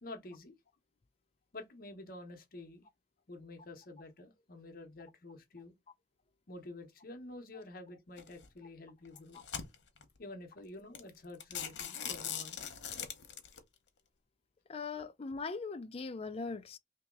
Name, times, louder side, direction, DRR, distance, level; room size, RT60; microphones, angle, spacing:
voice 1, 0.0-0.6 1.5-2.9 3.3-5.7 6.5-9.4 10.2-12.6, left 2 dB, 55° left, 0.8 m, -49 dB
sound 1, 8.2-8.5 9.0-10.0 10.6-10.7 10.9-11.1 11.4-13.6, left 8 dB, 85° left, 0.8 m, -41 dB
voice 2, 14.7-16.8, left 4 dB, 35° left, 0.4 m, -40 dB
2.9 x 2.8 x 3.6 m
head